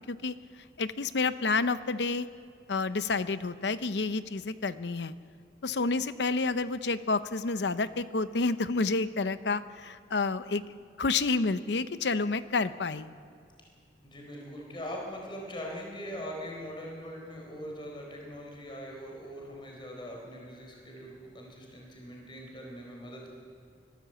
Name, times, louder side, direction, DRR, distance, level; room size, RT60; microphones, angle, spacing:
voice 1, 0.0-2.3 2.7-5.1 5.6-10.6 11.0-13.1, left 3 dB, 75° left, 13 dB, 0.7 m, -29 dB
voice 2, 14.0-23.3, equal, 30° left, 0 dB, 4.3 m, -41 dB
24.5 x 13.5 x 7.7 m, 2.4 s
head